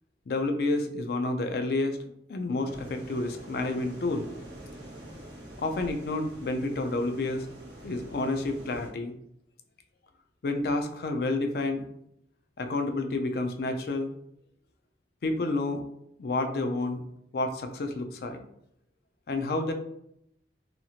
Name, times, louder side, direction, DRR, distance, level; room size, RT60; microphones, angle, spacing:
voice 1, 0.3-4.3 5.6-7.5 7.8-9.1 10.4-11.8 12.6-14.1 15.2-15.8 16.2-17.0 17.3-18.4 19.3-19.7, left 2 dB, 55° left, 6 dB, 0.4 m, -29 dB
sound 1, 2.7-8.9, right 1 dB, 60° right, 1.1 m, -45 dB
2.9 x 2.8 x 2.4 m, 0.77 s
head